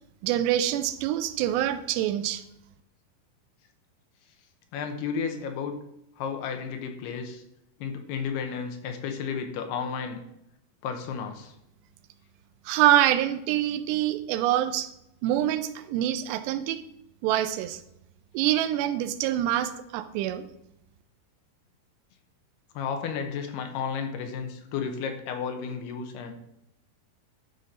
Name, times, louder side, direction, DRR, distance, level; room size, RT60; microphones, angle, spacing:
voice 1, 0.2-2.4 12.7-14.9 15.2-16.8 17.2-17.8 18.3-20.4, right 12 dB, 90° right, 11 dB, 2.8 m, -25 dB
voice 2, 4.7-5.8 6.2-7.4 7.8-10.2 10.8-11.5 22.7-26.3, left 6 dB, 80° left, 6 dB, 2.9 m, -32 dB
11.5 x 4.4 x 5.4 m, 0.81 s
omnidirectional pair, 4.8 m